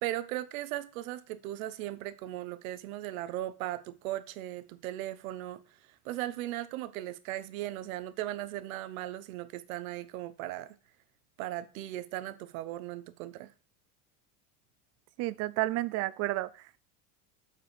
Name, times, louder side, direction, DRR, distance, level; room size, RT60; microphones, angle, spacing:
voice 1, 0.0-5.6 6.0-10.8 11.4-13.5, right 14 dB, 90° right, 0.9 m, -37 dB
voice 2, 15.2-16.8, right 18 dB, 40° right, 0.4 m, -31 dB
7.5 x 4.3 x 5.2 m
supercardioid pair, 145°, 41 cm